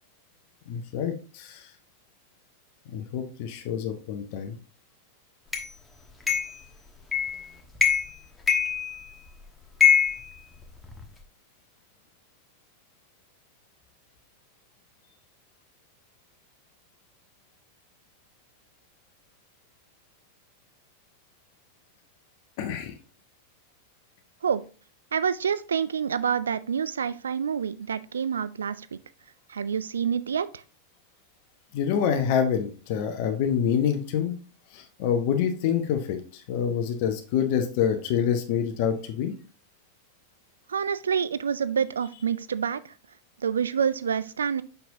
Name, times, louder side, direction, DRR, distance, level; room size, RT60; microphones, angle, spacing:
voice 1, 0.7-1.7 2.9-4.5 22.6-22.9 31.7-34.3 34.7-39.3, left 8 dB, 50° left, 6 dB, 0.9 m, -27 dB
sound 1, 5.5-5.7 6.3-6.6 7.1-7.4 7.8-8.2 8.5-9.3 9.8-11.1, left 7 dB, 10° left, 1.2 m, -23 dB
voice 2, 25.1-29.0 29.5-30.6 40.7-42.9 43.4-44.6, right 7 dB, 70° right, 16 dB, 0.3 m, -27 dB
6.9 x 5.9 x 2.7 m, 0.37 s
figure-of-eight pair, 90°, 0 cm